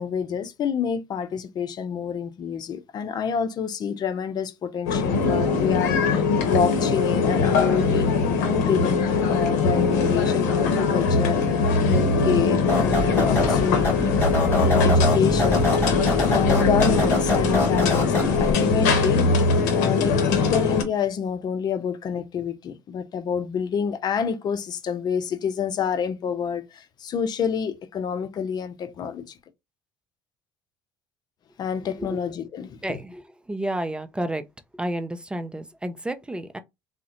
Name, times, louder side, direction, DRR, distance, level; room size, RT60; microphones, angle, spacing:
voice 1, 0.0-8.1 8.4-14.1 14.6-15.7 16.3-19.3 19.7-29.4 31.6-33.0, left 7 dB, 45° left, 0.6 m, -28 dB
sound 1, 4.9-20.8, left 4 dB, 85° left, 0.7 m, -21 dB
sound 2, 12.7-18.5, left 2 dB, 20° left, 2.0 m, -25 dB
voice 2, 32.8-34.4 34.7-36.6, right 1 dB, 10° right, 0.4 m, -31 dB
3.5 x 2.1 x 2.9 m
supercardioid pair, 75°, 9 cm